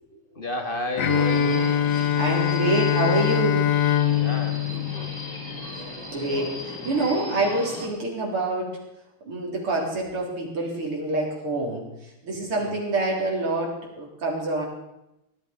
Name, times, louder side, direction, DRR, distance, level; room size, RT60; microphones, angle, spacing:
voice 1, 0.3-1.8 4.1-5.2 12.6-12.8, left 2 dB, 25° left, 5 dB, 1.8 m, -33 dB
Bowed string instrument, 1.0-5.9, left 9 dB, 60° left, 0.9 m, -23 dB
Subway metro underground, 1.0-7.8, left 1 dB, 10° left, 2.9 m, -37 dB
voice 2, 2.2-3.6 6.1-8.7 9.2-11.9 12.2-14.6, right 2 dB, 85° right, -2 dB, 4.8 m, -26 dB
18.5 x 12.5 x 5.3 m, 0.89 s
omnidirectional pair, 2.4 m